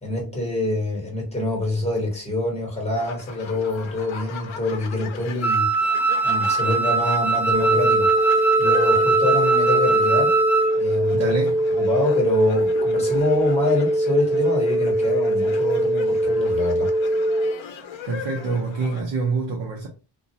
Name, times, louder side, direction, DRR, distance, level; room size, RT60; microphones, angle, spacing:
voice 1, 0.0-8.1 8.6-10.3 10.7-11.3 11.8-16.9, left 2 dB, 15° left, 1.2 m, -26 dB
sound 1, 2.9-19.0, left 7 dB, 80° left, 0.6 m, -38 dB
Wind instrument woodwind instrument, 5.4-10.8, right 4 dB, 35° left, 0.5 m, -21 dB
sound 2, 7.5-17.5, right 1 dB, 15° right, 1.2 m, -22 dB
voice 2, 11.1-11.6 18.1-19.9, right 4 dB, 75° right, 0.7 m, -26 dB
2.3 x 2.3 x 2.7 m
wide cardioid pair, 115°, 46 cm